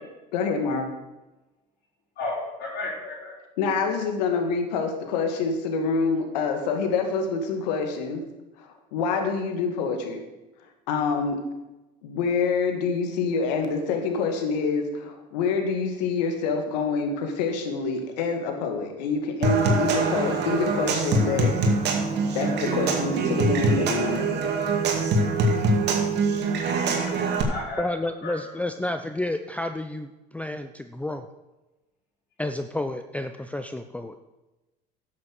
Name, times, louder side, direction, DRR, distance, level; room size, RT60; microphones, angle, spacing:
voice 1, 0.3-0.9 3.6-8.2 8.6-10.2 10.9-11.4 12.0-21.5 22.3-24.7, left 4 dB, 80° left, 5 dB, 2.1 m, -26 dB
voice 2, 2.2-3.4 26.9-27.9 28.2-28.4, left 2 dB, 55° left, -6 dB, 4.3 m, -34 dB
Human voice / Acoustic guitar / Percussion, 19.4-27.4, right 3 dB, 55° right, 2.3 m, -24 dB
Guitar, 19.9-27.6, right 4 dB, 20° right, 2.5 m, -39 dB
voice 3, 27.8-31.3 32.4-34.2, left 1 dB, 5° left, 8 dB, 0.6 m, -31 dB
12.0 x 7.4 x 6.6 m, 1.1 s
hypercardioid pair, 80°, 21 cm